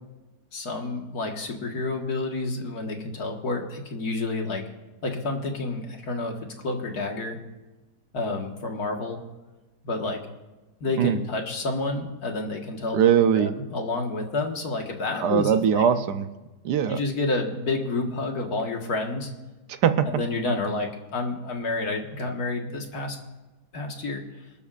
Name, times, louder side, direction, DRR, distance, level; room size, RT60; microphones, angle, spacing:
voice 1, 0.5-4.6 5.0-6.3 6.6-7.4 8.1-9.2 9.8-10.2 10.8-13.0 13.4-15.8 16.9-19.3 20.1-23.2 23.7-24.2, left 2 dB, 65° left, 2 dB, 2.1 m, -29 dB
voice 2, 12.9-13.5 15.2-16.3 16.6-17.0 19.7-20.1, right 8 dB, 75° right, 10 dB, 1.3 m, -21 dB
26.5 x 12.5 x 2.5 m, 1.1 s
omnidirectional pair, 1.8 m